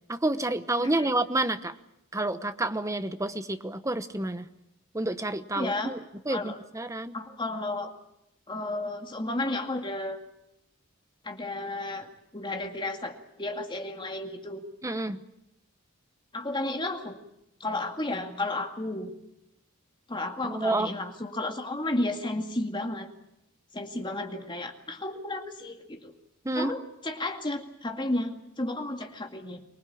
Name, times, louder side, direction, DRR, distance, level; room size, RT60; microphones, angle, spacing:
voice 1, 0.1-1.7 2.1-4.5 4.9-7.1 14.8-15.2 20.4-20.9 26.4-26.8, right 2 dB, 15° right, 10 dB, 1.0 m, -29 dB
voice 2, 0.8-1.1 5.5-5.9 6.3-6.6 7.1-7.9 8.5-10.2 11.2-14.6 16.3-17.2 17.6-19.1 20.1-23.1 23.7-26.1 26.5-29.6, left 2 dB, 20° left, 4 dB, 2.2 m, -33 dB
24.5 x 20.0 x 8.5 m, 0.84 s
head